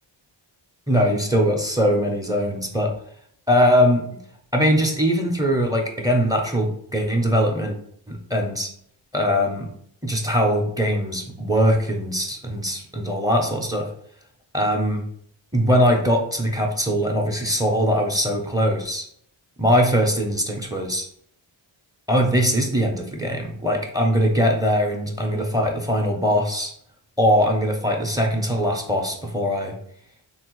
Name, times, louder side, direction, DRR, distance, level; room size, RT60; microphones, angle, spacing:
voice 1, 0.9-2.9 3.5-4.2 4.5-7.8 8.1-8.7 9.1-9.7 10.0-13.9 14.5-15.1 15.5-19.1 19.6-21.1 22.1-26.7 27.2-29.8, equal, 10° right, 2 dB, 0.6 m, -21 dB
3.4 x 2.0 x 3.0 m, 0.65 s
cardioid pair, 65°, 47 cm